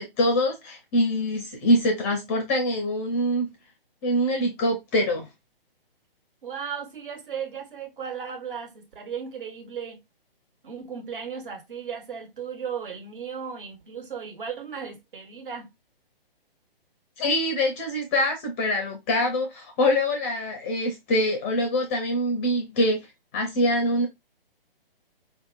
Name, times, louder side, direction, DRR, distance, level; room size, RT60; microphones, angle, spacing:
voice 1, 0.0-3.5 4.0-5.3 17.2-23.1 23.3-24.1, left 1 dB, 15° left, 0.4 m, -24 dB
voice 2, 6.4-10.0 10.6-15.7, right 7 dB, 60° right, 1.4 m, -36 dB
4.4 x 2.8 x 2.3 m
figure-of-eight pair, 130°, 29 cm